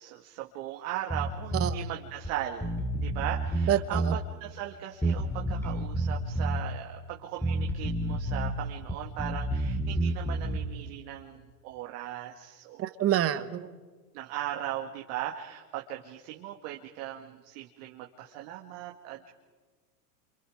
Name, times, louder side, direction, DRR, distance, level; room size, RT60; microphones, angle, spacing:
voice 1, 0.0-2.7 3.0-12.9 13.3-13.4 14.1-19.3, right 12 dB, 55° right, 1 dB, 2.1 m, -38 dB
Bass guitar, 1.1-1.8 2.2-2.3 2.6-4.2 5.0-6.6 7.4-8.5 8.8-10.7, right 1 dB, 5° left, 2.3 m, -30 dB
voice 2, 3.7-4.2 12.8-13.7, right 11 dB, 30° right, 12 dB, 1.2 m, -27 dB
29.0 x 28.0 x 5.1 m, 1.4 s
supercardioid pair, 125°, 48 cm